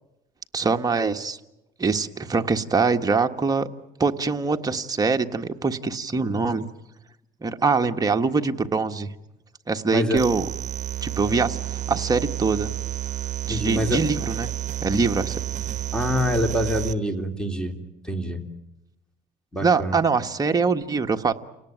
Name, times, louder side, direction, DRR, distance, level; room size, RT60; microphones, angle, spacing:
voice 1, 0.5-1.4 1.8-3.7 4.0-6.7 7.4-9.1 9.7-10.5 11.0-12.7 13.4-14.5 14.8-15.4 19.6-21.3, right 4 dB, 20° right, 5 dB, 1.5 m, -23 dB
voice 2, 9.9-10.2 11.3-11.4 13.5-14.0 15.9-17.8 18.0-18.4 19.5-20.0, equal, 5° left, 6 dB, 3.3 m, -25 dB
sound 1, 10.1-16.9, right 12 dB, 45° right, 1.2 m, -30 dB
29.5 x 18.5 x 9.3 m, 0.94 s
cardioid pair, 110°, 17 cm